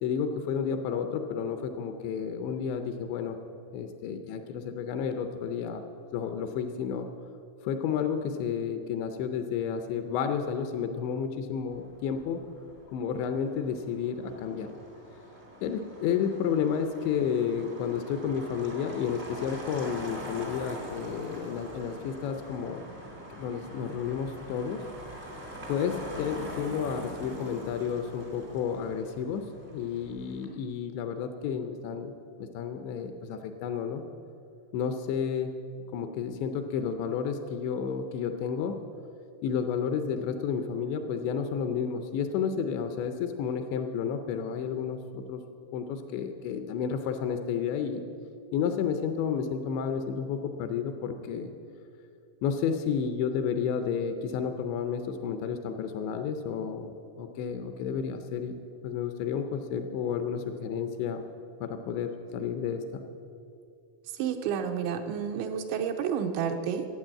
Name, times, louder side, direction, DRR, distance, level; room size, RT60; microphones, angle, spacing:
voice 1, 0.0-3.4 3.7-5.8 6.1-7.1 7.6-12.4 12.9-14.7 15.6-22.9 23.4-24.8 25.7-32.1 32.4-34.0 34.7-35.5 35.9-38.8 39.4-45.4 45.7-48.0 48.5-51.5 52.4-61.2 61.6-63.0, left 7 dB, 80° left, 6 dB, 2.8 m, -31 dB
Motor vehicle (road), 11.7-30.4, equal, 50° right, 0.7 m, -44 dB
voice 2, 64.1-66.9, right 7 dB, 85° right, 6 dB, 2.9 m, -30 dB
14.5 x 8.9 x 7.5 m, 2.6 s
omnidirectional pair, 5.5 m